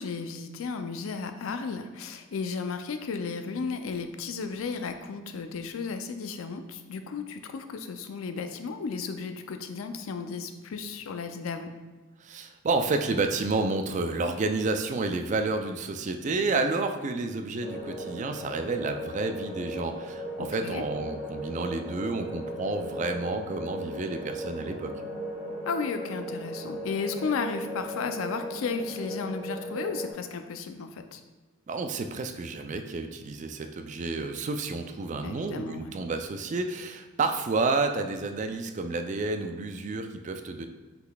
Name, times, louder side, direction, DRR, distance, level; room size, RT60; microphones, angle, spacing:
voice 1, 0.0-11.7 20.4-20.8 25.7-31.2 35.2-35.9, left 5 dB, 85° left, 7 dB, 0.4 m, -34 dB
voice 2, 12.2-24.9 31.7-40.7, right 3 dB, 35° right, 6 dB, 0.3 m, -30 dB
sound 1, 17.6-30.1, equal, 5° left, 1.3 m, -37 dB
5.6 x 3.9 x 2.3 m, 1.3 s
head